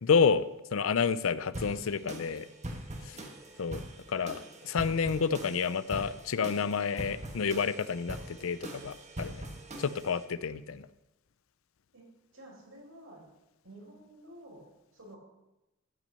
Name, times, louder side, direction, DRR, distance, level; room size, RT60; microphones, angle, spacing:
voice 1, 0.0-2.5 3.0-3.2 3.6-3.8 4.1-9.5 9.8-10.9, left 6 dB, 80° left, 16 dB, 0.5 m, -29 dB
sound 1, 1.5-10.2, right 1 dB, 35° right, 1.5 m, -43 dB
voice 2, 12.3-13.2 13.6-14.6 14.9-15.2, right 1 dB, 75° right, -1 dB, 4.6 m, -51 dB
14.0 x 6.1 x 6.8 m, 0.97 s
head